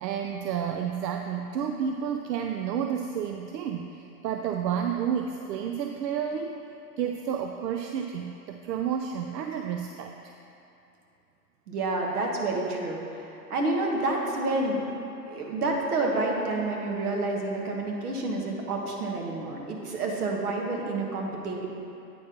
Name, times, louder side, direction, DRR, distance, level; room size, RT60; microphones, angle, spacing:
voice 1, 0.0-6.6 7.0-10.3, right 8 dB, 85° right, 4 dB, 0.6 m, -31 dB
voice 2, 11.7-14.8 15.3-21.7, right 2 dB, 65° right, 0 dB, 1.4 m, -29 dB
8.5 x 4.2 x 5.1 m, 2.9 s
hypercardioid pair, 175°, 49 cm